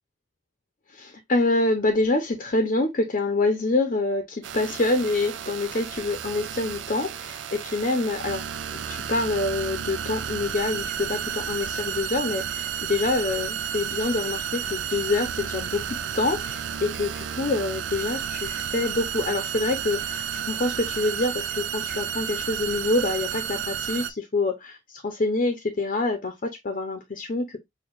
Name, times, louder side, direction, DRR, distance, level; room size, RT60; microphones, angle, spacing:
voice 1, 0.9-8.4 8.9-24.8 25.0-27.6, left 2 dB, 45° left, 0.7 m, -26 dB
sound 1, 4.4-24.1, right 8 dB, 85° right, 0.4 m, -32 dB
6.3 x 2.3 x 2.4 m
head